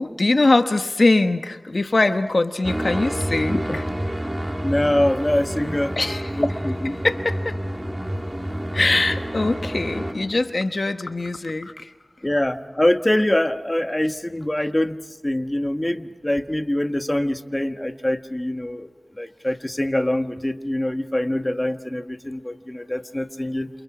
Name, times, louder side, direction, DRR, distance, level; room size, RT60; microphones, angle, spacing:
voice 1, 0.0-3.8 6.0-6.3 7.0-7.6 8.7-11.9, left 2 dB, 65° left, 8 dB, 1.1 m, -22 dB
sound 1, 2.6-10.1, equal, 20° right, 2.8 m, -28 dB
voice 2, 4.6-6.0 6.4-7.0 12.2-15.0 15.2-18.9 19.2-23.7, left 1 dB, 25° left, 8 dB, 1.4 m, -24 dB
29.0 x 28.5 x 5.0 m, 1.1 s
cardioid pair, 40°, 0 cm